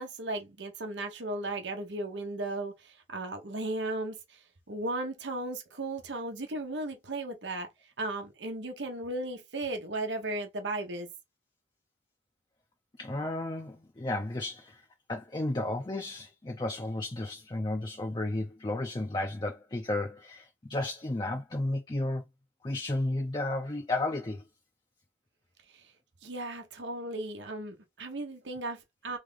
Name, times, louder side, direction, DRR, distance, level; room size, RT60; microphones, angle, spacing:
voice 1, 0.0-4.4 4.7-7.7 8.0-11.1 26.2-29.2, right 2 dB, 85° right, 1.0 m, -36 dB
voice 2, 13.0-14.8 15.1-22.2 22.6-24.4, left 2 dB, 25° left, 0.5 m, -33 dB
3.5 x 3.3 x 3.7 m
head